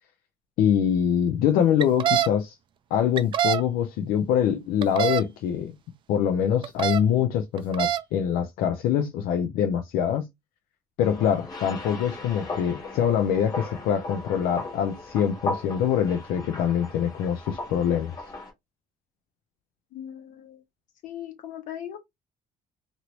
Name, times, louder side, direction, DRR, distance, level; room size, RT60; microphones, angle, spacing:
voice 1, 0.6-2.6 2.9-5.8 6.1-10.3 11.0-18.1, left 9 dB, 80° left, 0.5 m, -24 dB
sound 1, 1.8-2.3 3.2-3.6 4.8-5.2 6.6-7.0 7.6-8.0, right 10 dB, 35° right, 0.3 m, -24 dB
sound 2, 11.0-18.5, left 2 dB, 25° left, 0.9 m, -37 dB
voice 2, 19.9-20.6 21.0-22.0, left 10 dB, 60° left, 1.0 m, -38 dB
3.0 x 2.6 x 2.9 m
cardioid pair, 160°, 15 cm